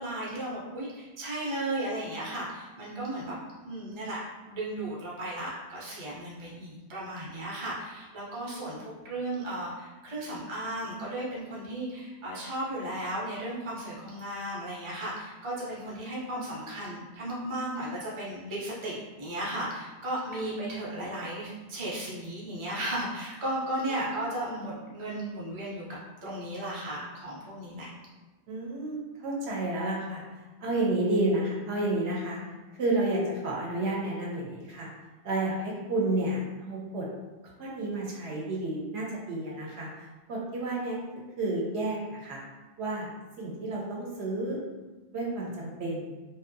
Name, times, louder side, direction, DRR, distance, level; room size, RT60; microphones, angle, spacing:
voice 1, 0.0-4.2 4.5-8.8 9.0-25.8 26.2-27.9, right 1 dB, 35° right, -5 dB, 0.6 m, -35 dB
voice 2, 8.3-8.9 24.0-24.1 24.4-24.5 28.5-30.2 30.6-32.4 32.8-34.9 35.2-37.1 37.6-41.0 41.4-42.4 42.8-43.1 43.4-44.6 45.1-46.1, right 2 dB, 75° right, -3 dB, 0.8 m, -31 dB
2.6 x 2.2 x 2.5 m, 1.2 s
omnidirectional pair, 1.2 m